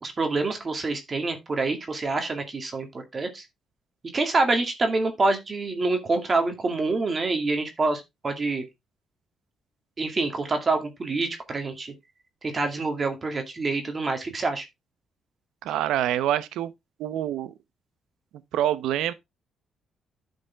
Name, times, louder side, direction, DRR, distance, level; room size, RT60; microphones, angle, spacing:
voice 1, 0.0-2.9 3.1-3.4 4.1-8.6 10.0-11.9 12.4-14.7, right 3 dB, 35° right, 2.1 m, -26 dB
voice 2, 15.6-16.7 17.0-17.5 18.5-19.1, right 11 dB, 85° right, 0.8 m, -26 dB
10.0 x 5.3 x 3.5 m
cardioid pair, 90°, 0 cm